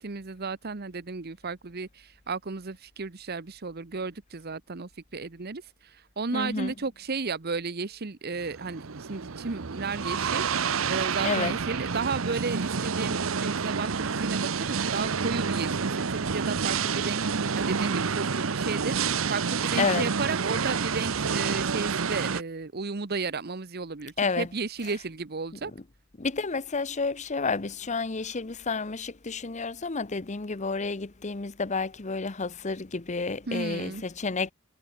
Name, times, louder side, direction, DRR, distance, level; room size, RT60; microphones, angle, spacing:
voice 1, 0.0-25.7 33.5-34.0, right 4 dB, 50° right, 1.0 m, -34 dB
voice 2, 6.3-6.7 11.2-11.5 19.8-20.0 24.2-24.5 26.2-34.5, left 4 dB, 35° left, 0.9 m, -30 dB
sound 1, 8.4-22.4, right 5 dB, 85° right, 0.9 m, -29 dB
head